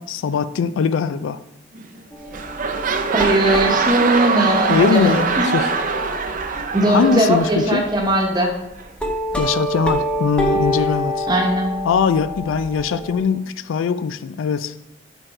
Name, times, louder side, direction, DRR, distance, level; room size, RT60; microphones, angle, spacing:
voice 1, 0.0-1.4 4.7-5.7 6.9-7.9 9.4-11.3 11.9-14.7, left 6 dB, 90° left, 14 dB, 0.3 m, -21 dB
sound 1, 1.8-2.0 2.3-8.1 8.8-8.9, right 4 dB, 45° right, 0.5 m, -23 dB
sound 2, 2.1-6.7 7.1-7.2 7.6-8.1 8.6-13.2, equal, 5° left, 0.8 m, -27 dB
voice 2, 3.1-5.5 6.7-8.5 11.3-11.7, right 1 dB, 20° right, 1 dB, 1.1 m, -19 dB
6.7 x 4.5 x 4.3 m, 0.90 s
head